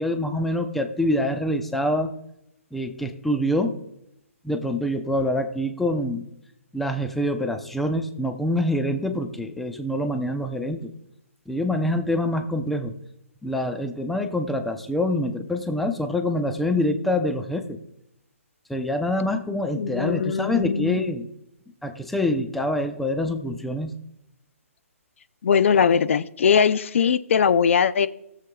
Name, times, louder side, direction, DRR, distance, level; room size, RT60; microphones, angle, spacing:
voice 1, 0.0-2.1 2.7-3.8 4.4-6.2 6.7-10.9 11.5-12.9 13.4-17.8 18.7-21.3 21.8-23.9, left 1 dB, ahead, 6 dB, 0.5 m, -25 dB
voice 2, 19.7-21.0 25.4-28.1, left 7 dB, 60° left, 14 dB, 0.5 m, -20 dB
19.0 x 7.4 x 2.3 m, 0.82 s
hypercardioid pair, 150°, 8 cm